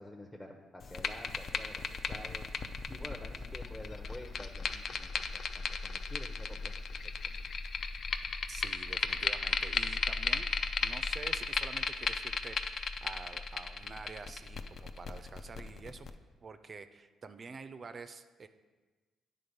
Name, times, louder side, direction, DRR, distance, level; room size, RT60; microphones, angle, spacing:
voice 1, 0.0-7.0 7.2-7.4, left 1 dB, 10° left, -1 dB, 0.6 m, -49 dB
sound 1, 0.8-16.1, left 5 dB, 55° left, 0.4 m, -36 dB
voice 2, 8.5-10.5 10.8-16.1 16.4-18.5, right 4 dB, 40° right, 10 dB, 0.4 m, -48 dB
9.3 x 3.8 x 5.2 m, 1.3 s
cardioid pair, 90°, 0 cm